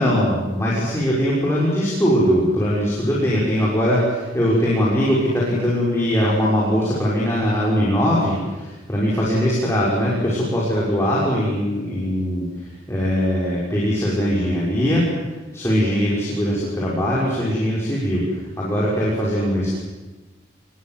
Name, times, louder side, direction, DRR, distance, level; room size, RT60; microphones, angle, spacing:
voice 1, 0.0-12.5 12.9-15.0 15.5-18.2 18.6-19.8, equal, 15° left, -6 dB, 6.3 m, -21 dB
29.0 x 22.0 x 7.8 m, 1.2 s
head